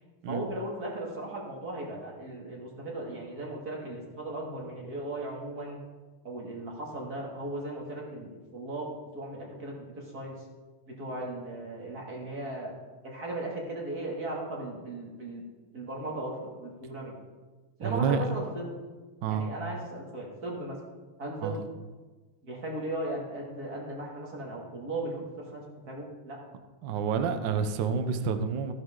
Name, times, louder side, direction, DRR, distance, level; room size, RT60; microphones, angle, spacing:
voice 1, 0.3-5.8 6.2-10.4 10.9-12.7 13.0-15.4 15.7-17.2 17.8-18.7 19.2-20.8 21.2-21.6 22.4-26.4, right 1 dB, 45° right, -2 dB, 2.9 m, -37 dB
voice 2, 17.8-18.5 19.2-19.5 21.4-21.6 26.8-28.7, right 6 dB, 65° right, 9 dB, 1.5 m, -29 dB
15.0 x 11.0 x 3.8 m, 1.3 s
omnidirectional pair, 2.3 m